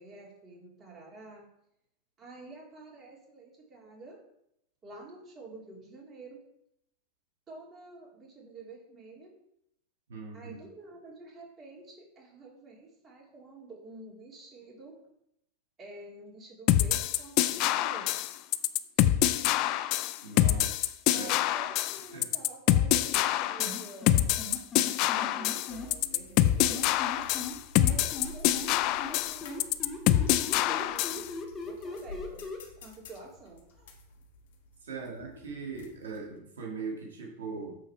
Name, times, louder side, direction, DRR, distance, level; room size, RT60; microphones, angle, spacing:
voice 1, 0.0-1.4 2.2-4.2 4.8-6.4 7.5-9.3 10.3-15.0 15.8-18.1 19.0-19.2 20.4-20.8 21.1-24.2 25.0-26.9 27.8-29.6 30.5-32.4 32.8-33.9 34.9-35.1, right 2 dB, 30° right, -2 dB, 3.0 m, -49 dB
voice 2, 10.1-10.6 20.2-20.8 21.1-21.3 22.1-22.2 34.8-37.8, right 4 dB, 85° right, -1 dB, 2.0 m, -40 dB
sound 1, 16.7-31.3, left 13 dB, 50° left, 0.4 m, -26 dB
sound 2, 23.6-25.9 26.6-28.7 29.0-32.6, left 3 dB, 25° left, 2.0 m, -39 dB
sound 3, 25.7-36.4, left 1 dB, 70° left, 1.5 m, -51 dB
7.8 x 4.1 x 5.8 m, 0.77 s
hypercardioid pair, 110°, 0 cm